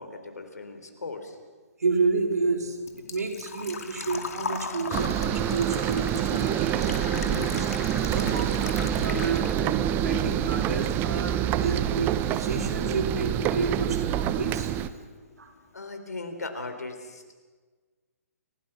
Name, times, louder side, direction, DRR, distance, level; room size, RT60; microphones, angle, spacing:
voice 1, 0.0-1.4 15.7-17.3, left 3 dB, 85° left, 7 dB, 3.9 m, -38 dB
voice 2, 1.8-14.7 15.4-15.5, right 4 dB, 80° right, 4 dB, 4.2 m, -31 dB
Engine / Trickle dribble / Fill (with liquid), 1.9-9.9 10.2-11.2 11.5-11.6 13.5-13.6 13.7-14.1 14.5-14.6 14.8-14.9, left 5 dB, 65° left, 2.5 m, -38 dB
sound 1, 4.9-14.9, right 10 dB, 25° right, 1.0 m, -26 dB
29.5 x 17.5 x 6.1 m, 1.4 s
hypercardioid pair, 135°, 9 cm